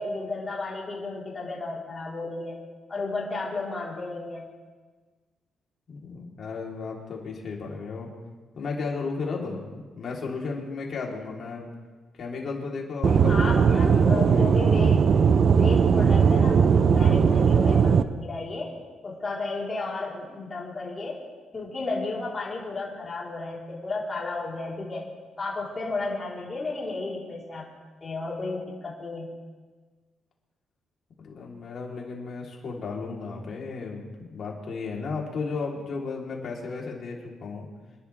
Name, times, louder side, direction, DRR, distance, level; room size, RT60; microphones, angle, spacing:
voice 1, 0.0-2.5 2.9-4.5 13.3-15.0 15.5-18.7 19.0-21.2 21.5-25.0 25.4-27.7 28.0-29.3, left 3 dB, 30° left, -5 dB, 4.1 m, -33 dB
voice 2, 5.9-8.1 8.5-11.7 12.2-14.5 31.2-37.6, left 4 dB, 50° left, -2 dB, 3.8 m, -34 dB
Aircraft / Engine, 13.0-18.0, right 6 dB, 50° right, 0.7 m, -19 dB
27.0 x 11.0 x 3.6 m, 1.4 s
cardioid pair, 105°, 0 cm